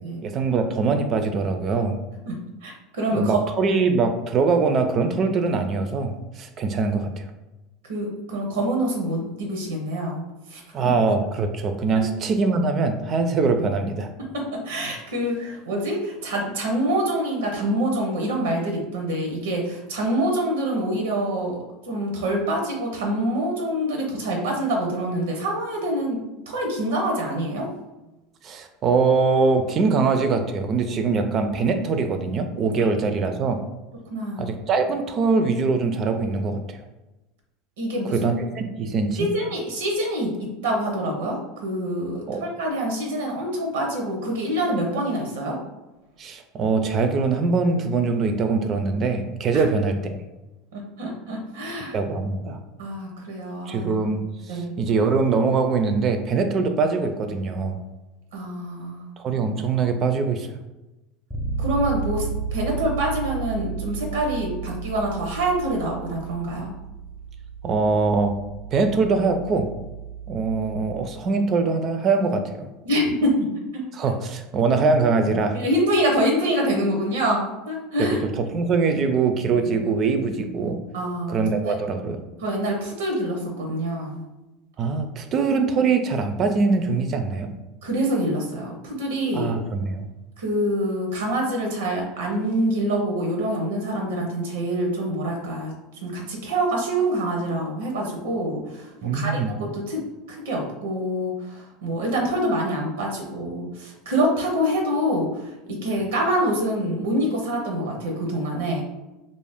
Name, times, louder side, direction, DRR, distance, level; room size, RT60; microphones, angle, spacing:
voice 1, 0.2-2.0 3.1-7.2 10.7-14.1 28.4-33.6 34.4-36.8 38.0-39.3 42.3-42.4 46.2-50.2 51.9-52.6 53.7-54.2 54.5-57.8 59.2-60.6 67.6-68.3 68.7-69.7 70.3-72.7 73.9-75.6 78.5-80.8 81.3-82.2 84.8-87.5 89.3-90.1 99.0-99.6, right 4 dB, 40° right, 6 dB, 0.3 m, -23 dB
voice 2, 2.3-3.4 7.8-10.2 10.5-10.9 14.2-21.6 21.8-27.7 34.1-34.5 37.8-38.3 39.2-45.6 49.5-49.7 50.7-52.0 52.8-53.9 54.5-54.7 58.3-59.1 61.6-66.7 72.8-73.9 75.5-78.2 80.9-81.4 81.6-81.7 82.4-84.2 87.8-89.5 90.4-95.7 96.0-108.8, right 1 dB, 90° right, 1 dB, 0.6 m, -26 dB
Bass guitar, 61.3-71.1, right 6 dB, 10° left, 0.5 m, -33 dB
2.5 x 2.0 x 3.4 m, 1.0 s
supercardioid pair, 105°, 0 cm